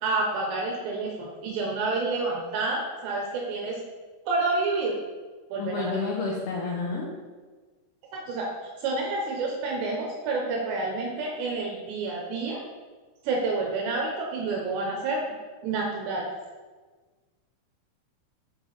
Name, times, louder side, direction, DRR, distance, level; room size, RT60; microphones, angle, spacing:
voice 1, 0.0-3.8 4.3-5.0 5.5-5.9 8.1-8.5 8.8-12.6 13.2-15.2 15.6-16.3, right 3 dB, 75° right, -1 dB, 2.6 m, -29 dB
voice 2, 5.6-7.1, left 3 dB, 85° left, -2 dB, 2.2 m, -30 dB
6.9 x 5.9 x 4.0 m, 1.4 s
omnidirectional pair, 5.8 m